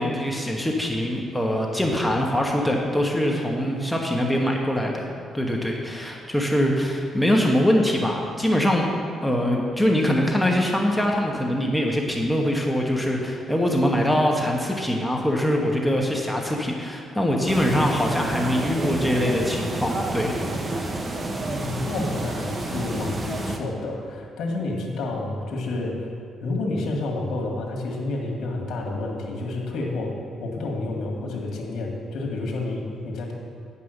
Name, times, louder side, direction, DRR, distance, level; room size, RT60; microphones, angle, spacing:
voice 1, 0.0-5.1 5.3-8.9 9.2-20.8, equal, 5° left, -1 dB, 1.2 m, -23 dB
sound 1, 17.5-23.6, right 2 dB, 30° right, 0.9 m, -29 dB
voice 2, 21.5-26.0 26.4-30.1 30.4-33.3, left 2 dB, 70° left, 0 dB, 1.7 m, -29 dB
9.5 x 5.5 x 6.5 m, 2.3 s
cardioid pair, 90°, 0 cm